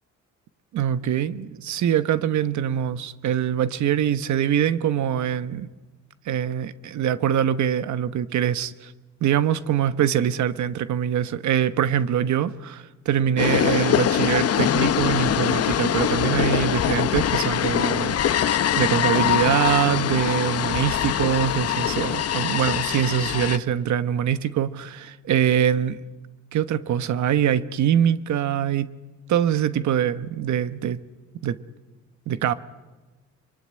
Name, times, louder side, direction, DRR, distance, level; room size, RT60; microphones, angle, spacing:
voice 1, 0.7-5.7 6.3-8.9 9.2-25.9 26.5-28.9 29.3-31.0 31.4-31.6 32.3-32.5, right 9 dB, 70° right, 1.1 m, -23 dB
sound 1, 13.4-23.6, left 10 dB, 55° left, 0.9 m, -23 dB
24.0 x 23.5 x 9.8 m
cardioid pair, 90°, 30 cm